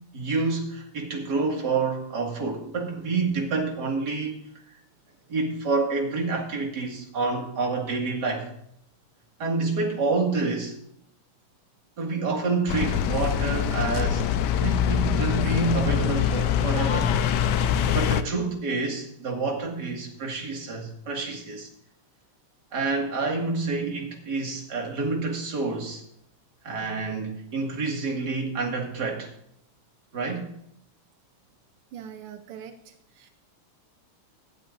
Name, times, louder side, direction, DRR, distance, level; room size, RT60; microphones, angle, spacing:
voice 1, 0.1-4.4 5.3-8.5 9.4-10.8 12.0-14.3 14.6-17.2 17.9-21.7 22.7-26.0 26.6-29.3 30.1-30.5, right 3 dB, 50° right, 1 dB, 2.6 m, -28 dB
sound 1, 12.7-18.2, left 9 dB, 75° left, 1.0 m, -24 dB
voice 2, 31.9-33.3, right 8 dB, 90° right, 7 dB, 1.7 m, -43 dB
18.5 x 11.5 x 2.6 m, 0.72 s
omnidirectional pair, 2.4 m